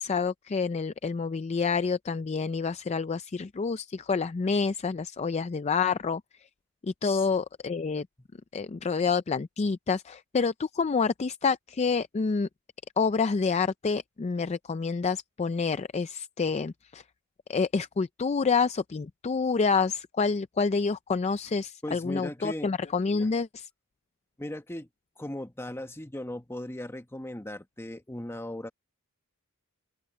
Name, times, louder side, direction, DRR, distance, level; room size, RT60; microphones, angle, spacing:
voice 1, 0.0-6.5 6.8-8.1 8.5-12.5 13.0-17.0 17.5-23.7, left 5 dB, 30° left, 0.4 m, -28 dB
voice 2, 21.8-22.7 23.2-23.3 24.4-24.9 25.2-28.7, left 1 dB, 10° left, 1.1 m, -37 dB
open air
head